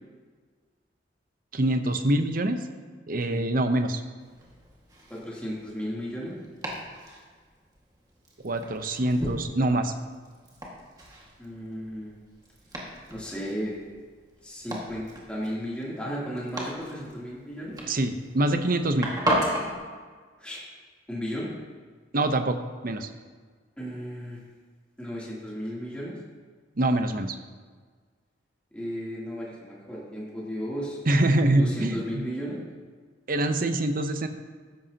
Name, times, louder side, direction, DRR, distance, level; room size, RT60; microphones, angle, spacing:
voice 1, 1.5-2.6 3.1-4.0 8.4-9.9 17.9-19.1 22.1-22.6 22.8-23.1 26.8-27.4 31.1-32.2 33.3-34.3, right 1 dB, 50° right, 7 dB, 0.8 m, -24 dB
Domestic sounds home sounds, 4.2-19.7, right 1 dB, 20° right, 1.8 m, -36 dB
voice 2, 5.1-6.4 11.4-12.1 13.1-13.8 14.4-17.8 20.4-20.6 21.1-21.5 23.8-24.4 25.0-26.2 28.7-31.0 31.6-32.6, equal, 5° left, -7 dB, 2.9 m, -34 dB
14.0 x 11.0 x 2.9 m, 1.5 s
head